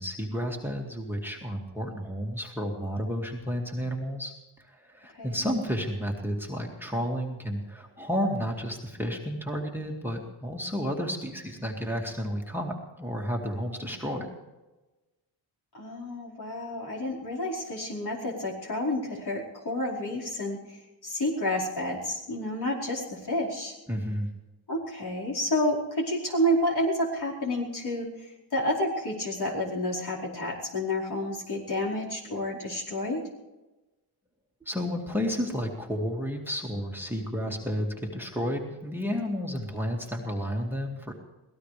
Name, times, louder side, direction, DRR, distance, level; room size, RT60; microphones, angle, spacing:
voice 1, 0.0-4.3 4.6-14.3 23.9-24.3 34.7-41.1, equal, 5° right, 1 dB, 2.2 m, -31 dB
voice 2, 15.7-23.7 24.7-33.2, left 1 dB, 50° left, -4 dB, 4.8 m, -30 dB
24.0 x 18.0 x 3.4 m, 1.1 s
cardioid pair, 90°, 48 cm